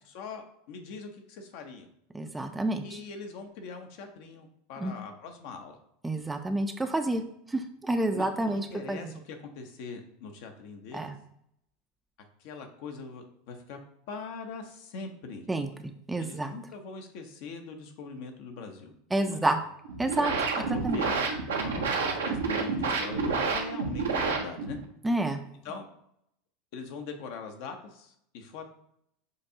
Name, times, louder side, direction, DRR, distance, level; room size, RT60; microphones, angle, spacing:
voice 1, 0.0-1.9 2.8-5.8 8.1-11.1 12.4-13.8 14.1-15.5 16.2-18.9 19.3-19.5 20.6-21.2 21.6-24.8 25.6-25.9 26.7-28.6, left 4 dB, 60° left, 5 dB, 0.8 m, -42 dB
voice 2, 2.1-3.0 4.8-4.9 6.0-7.2 7.5-9.0 10.9-11.1 15.5-16.5 19.1-19.6 20.0-20.3 20.7-21.0 25.0-25.4, right 2 dB, 10° right, 7 dB, 0.4 m, -29 dB
sound 1, 19.8-24.8, right 4 dB, 80° right, 0.7 m, -29 dB
6.6 x 2.7 x 2.7 m, 0.73 s
hypercardioid pair, 85°, 0 cm